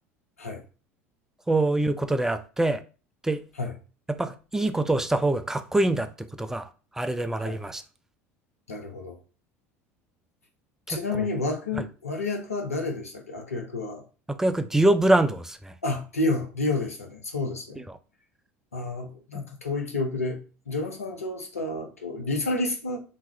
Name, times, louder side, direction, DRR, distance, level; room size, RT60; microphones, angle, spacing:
voice 1, 1.5-2.8 3.2-3.4 4.1-6.1 6.4-6.7 7.0-7.8 10.9-11.3 14.3-15.7, right 2 dB, 5° right, 0.3 m, -24 dB
voice 2, 8.7-9.2 10.9-14.0 15.8-17.8 18.7-20.4 20.7-23.0, left 2 dB, 85° left, 0.6 m, -30 dB
2.5 x 2.3 x 3.2 m
figure-of-eight pair, 70°, 8 cm